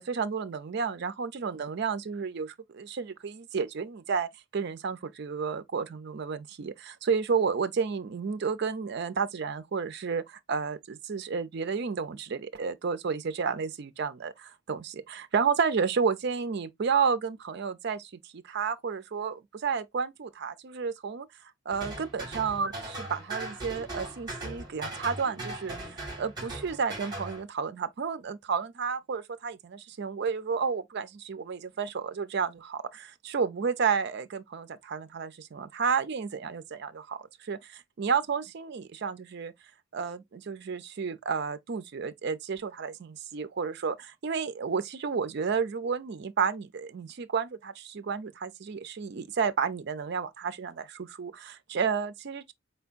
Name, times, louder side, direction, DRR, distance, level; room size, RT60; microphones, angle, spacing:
voice 1, 0.0-21.3 21.7-39.5 39.9-52.5, right 6 dB, 55° right, 0.4 m, -31 dB
sound 1, 21.7-27.4, right 2 dB, 20° right, 2.1 m, -39 dB
4.4 x 3.4 x 2.4 m
head